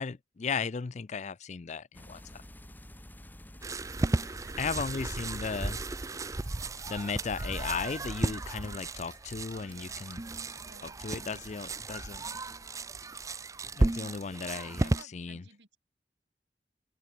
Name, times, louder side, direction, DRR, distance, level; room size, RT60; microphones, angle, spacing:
voice 1, 0.0-2.4 4.6-5.8 6.9-10.2 11.0-12.2 13.7-15.4, left 5 dB, 40° left, 0.4 m, -36 dB
sound 1, 1.9-12.9 13.2-13.9, left 1 dB, 10° left, 1.4 m, -53 dB
sound 2, 3.6-15.0, right 2 dB, 20° right, 0.5 m, -34 dB
voice 2, 4.1-5.9 9.5-10.1 10.6-11.8 14.5-15.8, right 3 dB, 90° right, 5.0 m, -57 dB
open air
head